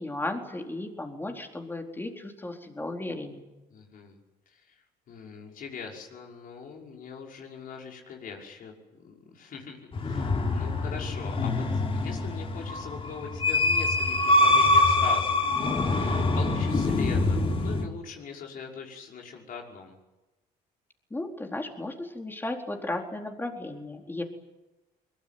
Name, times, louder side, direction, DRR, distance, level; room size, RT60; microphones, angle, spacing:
voice 1, 0.0-3.5 21.1-24.2, left 2 dB, 10° left, 2 dB, 4.3 m, -35 dB
voice 2, 3.7-4.2 4.5-4.8 5.1-20.0, left 5 dB, 55° left, 0 dB, 5.7 m, -42 dB
sound 1, 9.9-17.8, left 2 dB, 35° left, 3.7 m, -24 dB
23.0 x 22.0 x 9.5 m, 1.0 s
cardioid pair, 110°, 17 cm